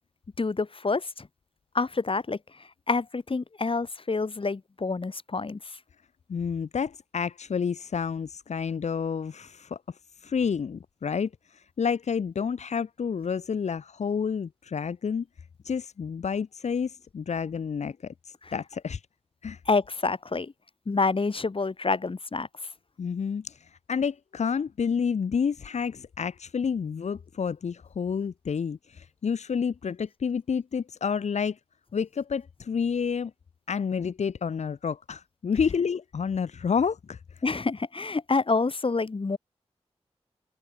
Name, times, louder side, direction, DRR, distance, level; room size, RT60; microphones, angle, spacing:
voice 1, 0.4-1.3 1.7-5.8 18.4-18.5 19.7-20.5 20.9-22.5 37.4-39.4, left 3 dB, 50° left, 4.5 m, -28 dB
voice 2, 6.3-15.2 15.6-19.0 19.4-19.6 23.0-31.6 31.9-33.3 33.7-37.2, left 6 dB, 85° left, 1.7 m, -29 dB
open air
cardioid pair, 55°, 11 cm